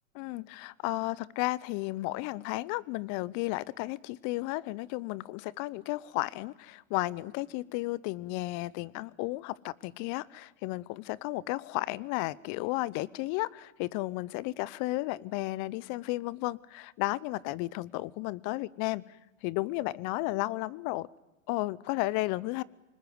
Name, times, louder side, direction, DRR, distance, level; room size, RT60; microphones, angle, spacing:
voice 1, 0.2-19.0 19.4-21.1 21.5-22.6, left 19 dB, 50° left, 22 dB, 0.9 m, -33 dB
26.0 x 20.0 x 9.6 m, 1.0 s
hypercardioid pair, 90°, 40 cm